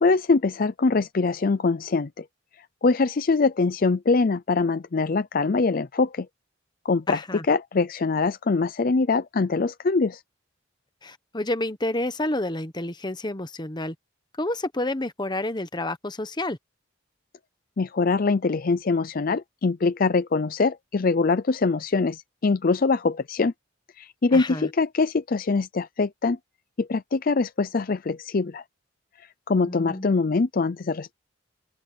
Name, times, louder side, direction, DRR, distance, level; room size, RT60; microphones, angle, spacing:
voice 1, 0.0-2.2 2.8-6.3 6.8-10.2 17.8-23.5 24.0-26.4 26.8-28.6 29.5-31.1, left 4 dB, 45° left, 0.5 m, -23 dB
voice 2, 7.1-7.4 11.0-13.9 14.4-16.6 24.3-24.7 29.6-30.1, left 1 dB, 20° left, 1.0 m, -29 dB
open air
head